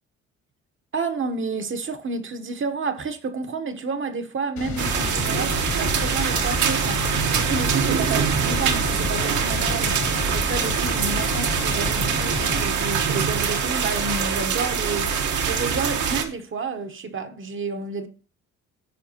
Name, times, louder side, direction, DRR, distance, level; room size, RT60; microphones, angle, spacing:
voice 1, 0.9-18.1, right 4 dB, 40° right, 1.0 m, -30 dB
sound 1, 4.6-12.6, left 6 dB, 70° left, 2.9 m, -32 dB
sound 2, 4.8-16.2, right 6 dB, 75° right, 1.3 m, -24 dB
14.0 x 4.6 x 2.8 m
cardioid pair, 90°, 30 cm